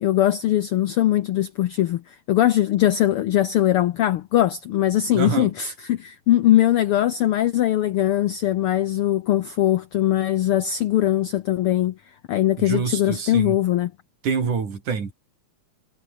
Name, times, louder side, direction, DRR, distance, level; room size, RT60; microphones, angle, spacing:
voice 1, 0.0-2.0 2.3-11.9 12.3-13.9, left 13 dB, 80° left, 1.2 m, -21 dB
voice 2, 5.1-5.5 12.6-13.6 14.2-15.1, right 6 dB, 90° right, 5.6 m, -26 dB
omnidirectional pair, 3.4 m